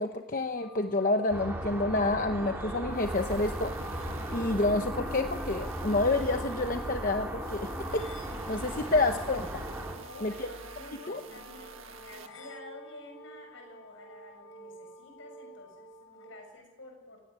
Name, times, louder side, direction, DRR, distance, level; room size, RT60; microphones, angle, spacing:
voice 1, 0.0-3.7 4.3-9.7 10.2-10.5 11.1-11.2, left 2 dB, 40° left, 6 dB, 0.9 m, -29 dB
sound 1, 0.5-16.5, equal, 85° left, 3.6 m, -49 dB
sound 2, 1.3-9.9, right 1 dB, 10° right, 3.8 m, -37 dB
sound 3, 2.9-12.3, right 5 dB, 80° right, 1.6 m, -49 dB
voice 2, 10.0-17.2, left 2 dB, 70° left, 4 dB, 6.6 m, -50 dB
18.5 x 17.5 x 9.4 m, 1.2 s
head